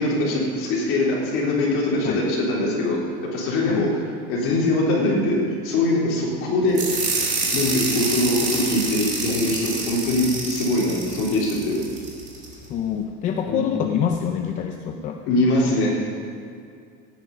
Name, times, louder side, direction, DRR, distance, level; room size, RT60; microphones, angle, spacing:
voice 1, 0.0-3.0 3.3-4.0 4.3-11.8 13.5-13.6 15.3-16.0, left 2 dB, 45° left, -4 dB, 3.7 m, -22 dB
sound 1, 6.7-12.5, right 3 dB, 25° right, 2.0 m, -27 dB
voice 2, 12.7-15.2, left 8 dB, 25° left, 3 dB, 0.5 m, -26 dB
16.0 x 9.3 x 5.4 m, 2.3 s
cardioid pair, 175°, 31 cm